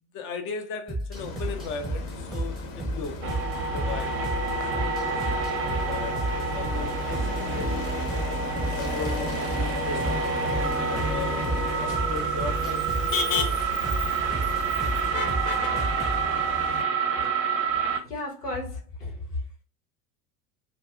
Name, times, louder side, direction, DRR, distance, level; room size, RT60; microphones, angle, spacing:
voice 1, 0.1-3.4 3.7-5.2 5.8-7.8 8.7-9.2 9.5-13.2, left 5 dB, 30° left, 0.4 m, -38 dB
sound 1, 0.9-16.2, right 1 dB, ahead, 0.8 m, -33 dB
Motor vehicle (road), 1.1-16.8, left 3 dB, 60° left, 0.7 m, -34 dB
sound 2, 3.2-18.0, right 5 dB, 30° right, 0.5 m, -28 dB
voice 2, 17.8-19.4, left 2 dB, 85° left, 0.9 m, -34 dB
2.5 x 2.4 x 2.4 m
figure-of-eight pair, 70°, 46 cm